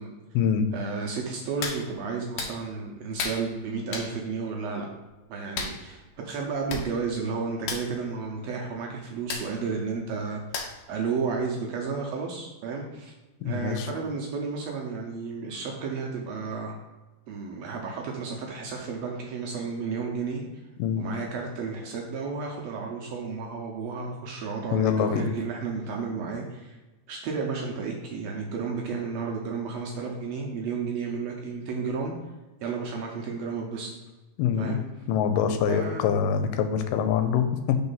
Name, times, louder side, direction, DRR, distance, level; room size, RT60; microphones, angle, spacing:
voice 1, 0.7-4.9 5.3-10.6 10.9-13.1 13.4-16.8 17.3-20.4 21.0-26.8 27.1-32.1 32.6-33.9 34.6-34.8 35.7-36.1, right 5 dB, 75° right, 0 dB, 1.5 m, -32 dB
Hands, 1.6-1.8 2.4-2.5 3.2-3.4 3.9-4.1 5.6-5.8 6.4-6.5 6.7-6.9 7.1-7.3 7.6-7.8 9.3-9.5 10.5-10.9 11.3-11.4, left 4 dB, 70° left, 1.9 m, -32 dB
voice 2, 13.4-13.9 20.8-21.1 24.7-25.3 34.4-34.8 35.1-37.8, left 7 dB, 90° left, 8 dB, 2.2 m, -24 dB
4.4 x 4.1 x 5.5 m, 1.1 s
omnidirectional pair, 3.7 m